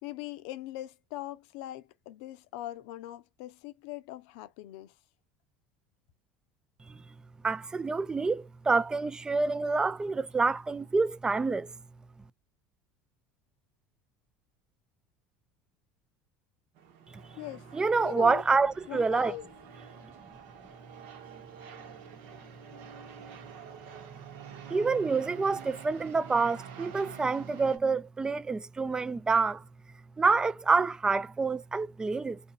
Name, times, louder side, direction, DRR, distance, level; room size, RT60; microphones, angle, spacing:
voice 1, 0.0-4.9 17.4-17.7 18.0-18.4 18.9-19.5, left 15 dB, 75° left, 0.5 m, -41 dB
voice 2, 7.4-11.7 17.7-19.3 24.7-29.6 30.2-32.4, right 4 dB, 15° right, 0.3 m, -27 dB
sound 1, 16.7-27.8, right 7 dB, 70° right, 1.2 m, -48 dB
2.7 x 2.5 x 4.0 m
supercardioid pair, 90°, 4 cm